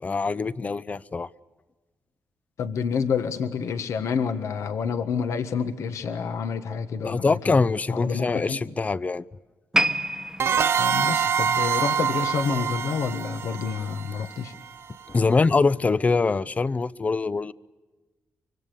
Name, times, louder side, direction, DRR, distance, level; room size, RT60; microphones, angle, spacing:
voice 1, 0.0-1.3 7.0-9.2 15.1-17.5, left 4 dB, 30° left, 0.7 m, -23 dB
voice 2, 2.6-7.6 7.9-8.6 10.8-14.5, left 6 dB, 70° left, 1.6 m, -28 dB
sound 1, 9.7-13.0 13.3-13.6 14.3-14.4, right 1 dB, 10° right, 1.2 m, -29 dB
sound 2, 10.4-14.9, right 7 dB, 55° right, 0.8 m, -25 dB
25.0 x 24.5 x 6.8 m
cardioid pair, 110°, 5 cm